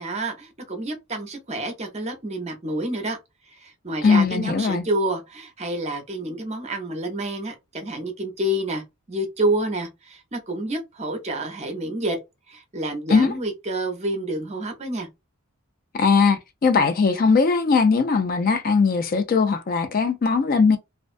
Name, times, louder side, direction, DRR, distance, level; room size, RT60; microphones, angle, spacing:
voice 1, 0.0-3.2 3.6-8.8 9.1-12.2 12.5-15.1, right 1 dB, 30° right, 0.6 m, -28 dB
voice 2, 4.0-4.9 13.1-13.3 15.9-20.8, left 4 dB, 40° left, 0.3 m, -19 dB
2.4 x 2.1 x 2.4 m
head